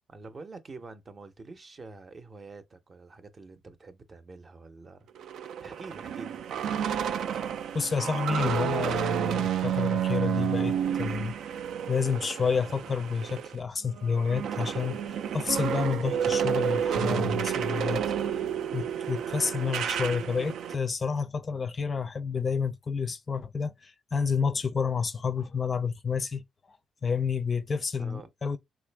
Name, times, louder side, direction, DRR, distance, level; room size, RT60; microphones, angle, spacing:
voice 1, 0.1-6.4 28.0-28.3, right 3 dB, 35° right, 0.6 m, -47 dB
sound 1, 5.2-13.6 13.9-20.7, right 9 dB, 75° right, 0.3 m, -30 dB
voice 2, 7.7-11.4 11.9-15.0 15.3-18.0 18.7-26.4 26.7-26.8 27.0-28.6, left 5 dB, 35° left, 0.4 m, -29 dB
3.3 x 2.5 x 3.3 m
cardioid pair, 90°, 0 cm